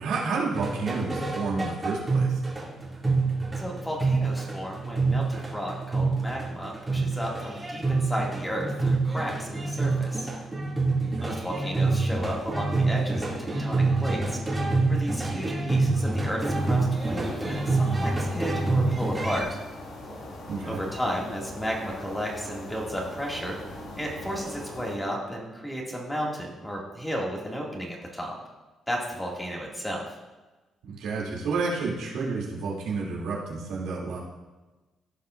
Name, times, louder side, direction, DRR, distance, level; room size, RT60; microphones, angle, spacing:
voice 1, 0.0-2.4 11.0-11.4 20.5-20.8 30.8-34.2, right 4 dB, 90° right, -5 dB, 2.7 m, -30 dB
sound 1, 0.5-19.4, right 3 dB, 20° right, 2.3 m, -27 dB
voice 2, 3.6-10.3 11.2-14.4 14.9-19.6 20.6-23.6 24.0-28.3 28.9-30.2, equal, 10° left, -2 dB, 2.1 m, -33 dB
sound 2, 16.4-25.0, left 1 dB, 75° left, 2.4 m, -41 dB
15.5 x 5.5 x 2.5 m, 1.2 s
cardioid pair, 90°, 0 cm